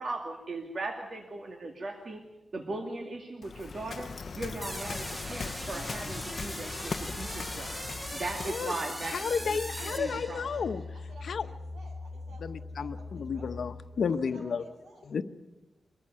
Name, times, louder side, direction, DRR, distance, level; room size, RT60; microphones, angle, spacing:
voice 1, 0.0-2.2 2.5-7.7 8.1-10.5, right 2 dB, 55° right, 3 dB, 2.3 m, -38 dB
Waves surf, 3.4-8.7, left 4 dB, 55° left, 0.7 m, -39 dB
sound 1, 4.6-10.8, equal, 10° right, 1.7 m, -40 dB
sound 2, 6.9-14.3, left 3 dB, 20° left, 3.0 m, -43 dB
voice 2, 7.8-8.8 9.2-13.7 14.2-15.1, right 2 dB, 75° right, 2 dB, 7.2 m, -53 dB
voice 3, 9.1-10.8 11.2-11.5 12.4-14.6 15.1-15.2, left 6 dB, 75° left, 11 dB, 1.0 m, -32 dB
24.0 x 14.5 x 9.8 m, 1.0 s
wide cardioid pair, 110°, 0 cm